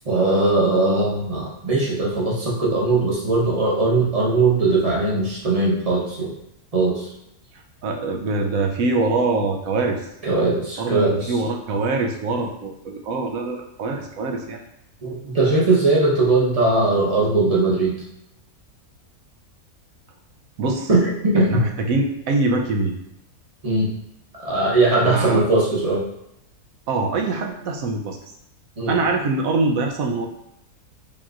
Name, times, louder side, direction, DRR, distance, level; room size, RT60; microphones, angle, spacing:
voice 1, 0.0-6.3 6.7-7.1 10.2-11.4 15.0-18.0 20.9-21.6 23.6-23.9 24.4-26.0 28.8-29.0, right 2 dB, 30° right, -5 dB, 0.9 m, -20 dB
voice 2, 7.8-10.1 10.8-14.6 20.6-20.9 21.3-22.9 25.0-25.5 26.9-28.2 28.9-30.3, right 3 dB, 70° right, 2 dB, 1.0 m, -23 dB
5.2 x 3.0 x 2.5 m, 0.81 s
omnidirectional pair, 1.6 m